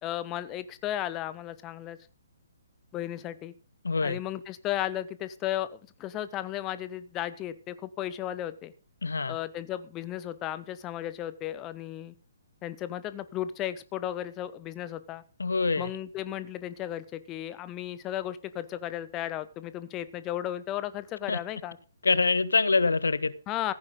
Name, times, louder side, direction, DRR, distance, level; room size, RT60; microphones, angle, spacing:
voice 1, 0.0-2.0 2.9-3.5 4.0-8.7 9.3-12.1 12.6-15.2 15.8-21.8 23.5-23.7, left 12 dB, 20° left, 0.6 m, -34 dB
voice 2, 3.8-4.2 9.0-9.4 15.4-15.9 21.3-21.4 22.0-23.3, left 4 dB, 70° left, 0.7 m, -25 dB
15.0 x 9.7 x 3.9 m
figure-of-eight pair, 130°, 0 cm